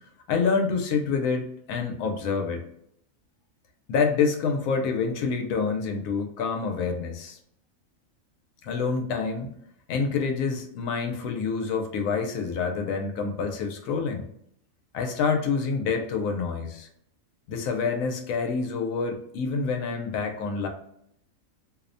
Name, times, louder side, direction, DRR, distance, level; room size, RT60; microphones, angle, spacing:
voice 1, 0.3-2.6 3.9-7.4 8.6-9.5 9.9-14.3 14.9-16.9 17.5-20.7, left 5 dB, 80° left, 4 dB, 1.0 m, -27 dB
2.7 x 2.1 x 2.5 m, 0.72 s
omnidirectional pair, 1.4 m